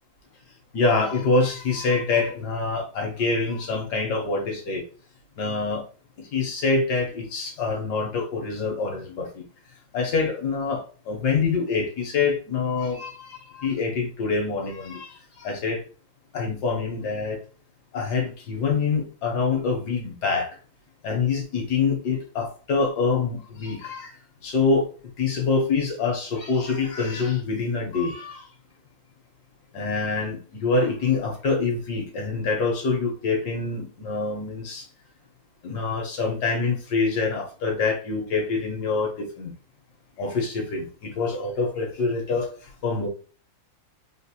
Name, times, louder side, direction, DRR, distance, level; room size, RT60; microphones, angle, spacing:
voice 1, 0.7-4.9 5.4-5.8 6.2-9.4 9.9-15.8 16.3-17.4 17.9-20.5 21.0-24.2 24.4-24.9 25.2-28.5 29.7-34.9 35.6-39.5 40.2-43.1, left 4 dB, 65° left, 1.2 m, -25 dB
3.6 x 2.5 x 2.7 m
omnidirectional pair, 2.1 m